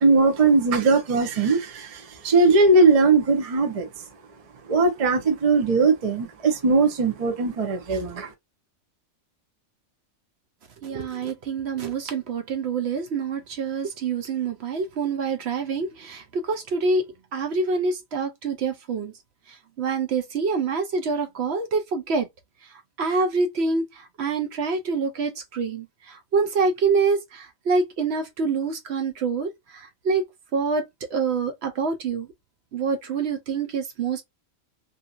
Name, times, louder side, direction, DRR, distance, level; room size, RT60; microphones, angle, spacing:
voice 1, 0.0-3.9 4.7-8.3, right 3 dB, 40° right, 0.5 m, -19 dB
voice 2, 10.8-19.1 19.5-22.3 23.0-30.2 30.5-32.3 32.7-34.2, right 4 dB, 65° right, 0.8 m, -26 dB
2.7 x 2.7 x 2.3 m
omnidirectional pair, 1.3 m